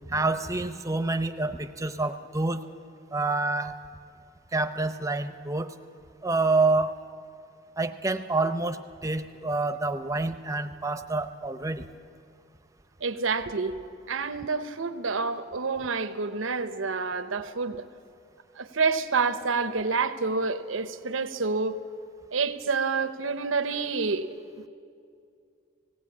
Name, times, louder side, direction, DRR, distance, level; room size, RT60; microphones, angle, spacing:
voice 1, 0.1-2.6 3.1-3.7 4.5-5.7 6.2-6.9 7.8-11.9, right 3 dB, 15° right, 0.6 m, -27 dB
voice 2, 13.0-13.8 14.1-17.9 18.6-21.8 22.3-24.3, right 4 dB, 85° right, 0.9 m, -28 dB
18.5 x 17.0 x 8.5 m
head